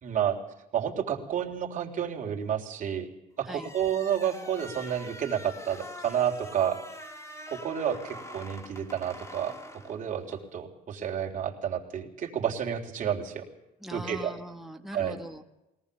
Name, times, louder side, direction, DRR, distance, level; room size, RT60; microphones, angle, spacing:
voice 1, 0.0-0.4 0.7-3.1 3.4-6.8 7.5-9.6 9.8-13.4 13.9-14.3 14.9-15.2, right 9 dB, 50° right, 0 dB, 3.5 m, -30 dB
sound 1, 3.5-10.5, left 1 dB, 15° left, 2.2 m, -45 dB
voice 2, 13.8-15.4, equal, ahead, 4 dB, 1.5 m, -40 dB
22.0 x 18.0 x 7.0 m, 0.93 s
cardioid pair, 110°, 17 cm